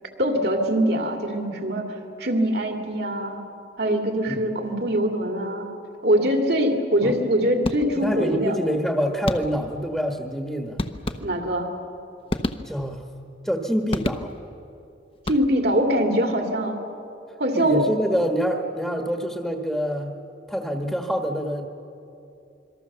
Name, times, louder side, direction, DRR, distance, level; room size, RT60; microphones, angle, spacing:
voice 1, 0.2-3.4 3.8-5.7 6.0-8.6 11.2-11.7 15.3-16.8 17.4-17.9, equal, 60° right, 3 dB, 2.7 m, -23 dB
sound 1, 7.6-8.2 9.3-9.8 10.8-11.6 12.3-13.1 13.9-14.6 15.1-15.8, left 1 dB, 30° left, 0.8 m, -30 dB
voice 2, 7.9-10.8 12.6-13.0 13.4-14.3 17.5-20.2 20.5-21.7, equal, ahead, 3 dB, 1.3 m, -26 dB
26.5 x 23.0 x 6.9 m, 2.8 s
head